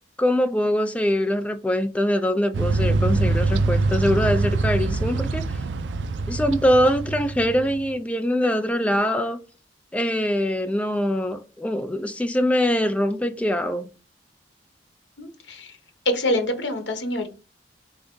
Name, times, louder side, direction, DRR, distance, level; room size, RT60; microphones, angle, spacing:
voice 1, 0.2-5.6 6.3-9.4 9.9-13.9, equal, 10° left, 0.4 m, -23 dB
sound 1, 2.5-7.8, right 3 dB, 80° right, 0.4 m, -24 dB
voice 2, 15.2-15.7 16.1-17.3, left 1 dB, 80° left, 0.8 m, -25 dB
3.4 x 2.7 x 3.6 m
head